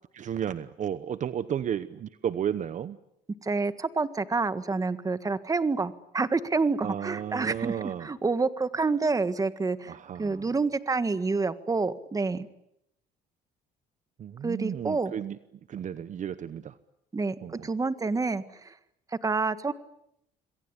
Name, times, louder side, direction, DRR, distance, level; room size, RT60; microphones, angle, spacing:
voice 1, 0.1-3.0 6.8-8.1 9.9-10.5 14.2-15.4 15.7-16.7 17.4-17.7, right 9 dB, 45° right, 14 dB, 1.0 m, -33 dB
voice 2, 3.4-9.9 10.2-12.5 14.4-15.1 17.1-17.4 17.6-18.7 19.2-19.7, right 4 dB, 20° right, 13 dB, 1.7 m, -28 dB
27.0 x 22.5 x 9.9 m, 0.80 s
cardioid pair, 110°, 17 cm